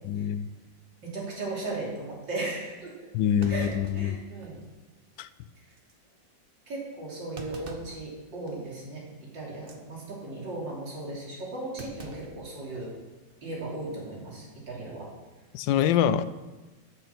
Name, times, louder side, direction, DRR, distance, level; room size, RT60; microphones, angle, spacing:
voice 1, 0.0-0.5 3.1-4.2 5.2-5.3 15.5-16.2, left 9 dB, 90° left, 14 dB, 1.3 m, -25 dB
voice 2, 1.0-3.1 3.5-4.6 6.7-12.9 13.4-15.1, right 2 dB, 80° right, -4 dB, 3.7 m, -37 dB
Thump thud, 2.5-2.6 3.4-4.7 5.1-5.2 5.7-5.9 7.4-8.0 8.5-8.7 9.5-9.8 11.8-13.0 13.3-13.4 14.5-14.9, right 2 dB, 35° right, 1.0 m, -45 dB
13.5 x 7.0 x 6.0 m, 1.2 s
omnidirectional pair, 2.0 m